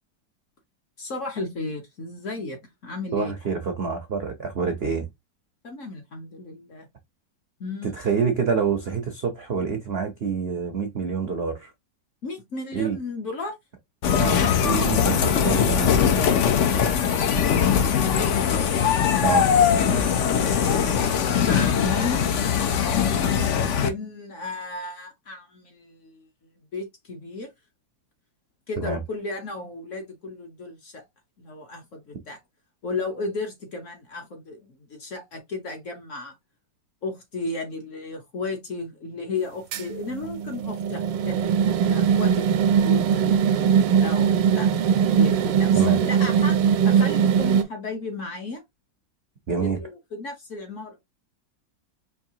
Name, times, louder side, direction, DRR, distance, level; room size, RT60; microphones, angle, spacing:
voice 1, 1.0-3.3 5.6-6.9 7.6-7.9 12.2-13.6 17.7-18.3 20.4-22.3 23.4-26.3 26.7-27.5 28.7-31.1 31.4-32.4 32.8-36.3 37.0-46.6 46.8-48.6 49.6-51.0, left 3 dB, 55° left, 1.0 m, -34 dB
voice 2, 3.1-5.1 7.8-11.7 12.7-13.0 14.2-16.3 19.2-19.5 28.8-29.0 45.7-46.0 49.5-49.8, right 5 dB, 65° right, 0.6 m, -27 dB
sound 1, 14.0-23.9, left 7 dB, 70° left, 0.7 m, -21 dB
sound 2, 39.7-47.6, right 7 dB, 85° right, 1.3 m, -21 dB
4.6 x 2.7 x 2.7 m
omnidirectional pair, 2.0 m